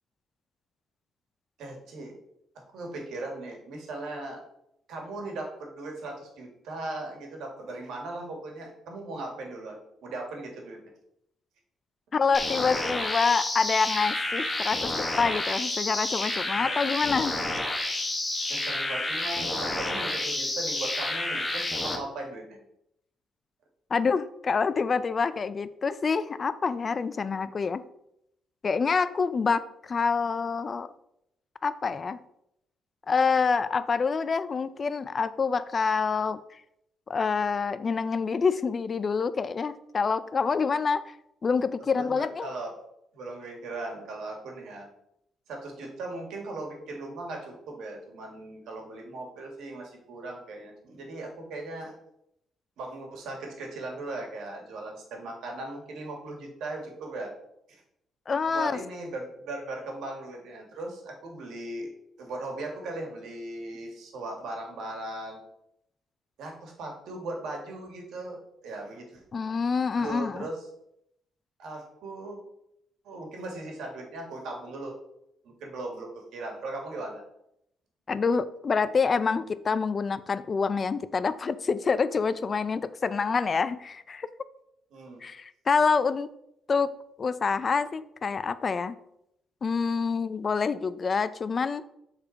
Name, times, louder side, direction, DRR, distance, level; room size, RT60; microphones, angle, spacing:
voice 1, 1.6-2.1 2.7-4.4 4.9-10.8 16.5-16.8 18.5-22.6 42.0-42.7 43.1-44.9 45.5-51.9 52.8-57.3 57.7-57.8 58.5-61.9 62.2-65.4 66.4-69.2 69.9-70.7 71.6-72.4 73.0-74.9 75.4-77.2 84.9-85.2, right 2 dB, 80° right, 1 dB, 1.9 m, -38 dB
voice 2, 12.1-17.3 23.9-27.8 28.6-30.9 31.6-32.2 33.1-36.4 37.1-41.0 41.4-42.5 58.3-58.7 69.3-70.5 78.1-84.3 85.2-86.3 86.7-86.9 87.2-89.0 89.6-91.9, left 5 dB, 40° left, 14 dB, 0.4 m, -27 dB
sound 1, 12.3-22.0, left 2 dB, 20° left, 1.3 m, -30 dB
6.7 x 4.1 x 4.6 m, 0.78 s
cardioid pair, 90°, 0 cm